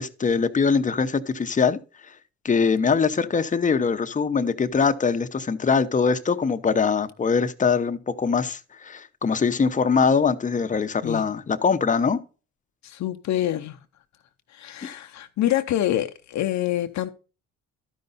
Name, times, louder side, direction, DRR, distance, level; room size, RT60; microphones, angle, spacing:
voice 1, 0.0-1.8 2.4-12.2, left 5 dB, 25° left, 0.7 m, -22 dB
voice 2, 12.8-13.8 14.5-17.1, left 12 dB, 65° left, 0.7 m, -26 dB
12.5 x 5.4 x 4.0 m
cardioid pair, 90°, 30 cm